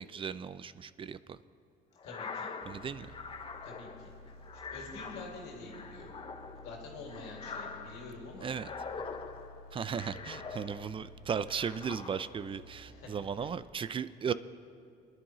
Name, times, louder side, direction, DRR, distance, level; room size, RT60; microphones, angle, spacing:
voice 1, 0.0-1.4 2.6-3.1 8.4-8.7 9.7-14.3, right 7 dB, 30° right, 15 dB, 0.4 m, -36 dB
voice 2, 2.0-2.5 3.6-4.1 4.7-6.1 6.6-8.5 12.8-13.1, left 3 dB, 90° left, -1 dB, 2.4 m, -47 dB
sound 1, 2.0-11.1 11.5-12.5, left 5 dB, 30° left, 0.8 m, -44 dB
sound 2, 2.6-13.7, left 1 dB, 90° right, 2.5 m, -53 dB
23.0 x 10.5 x 3.1 m, 2.4 s
cardioid pair, 110°, 17 cm